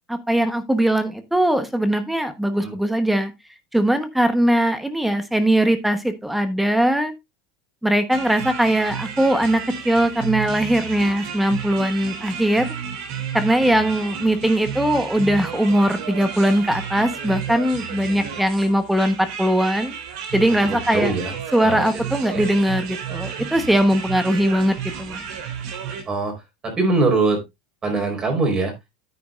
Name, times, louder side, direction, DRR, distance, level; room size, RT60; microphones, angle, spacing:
voice 1, 0.1-3.3 3.7-7.1 7.8-12.7 13.3-19.9 20.3-21.1 21.5-25.2, right 1 dB, 5° right, 1.1 m, -20 dB
sound 1, 8.1-26.0, right 7 dB, 70° right, 3.4 m, -32 dB
voice 2, 20.9-21.3 21.6-21.9 22.3-22.6 26.1-26.3 26.6-27.4 27.8-28.7, right 3 dB, 25° right, 4.4 m, -22 dB
9.5 x 9.4 x 2.5 m
supercardioid pair, 140°, 3 cm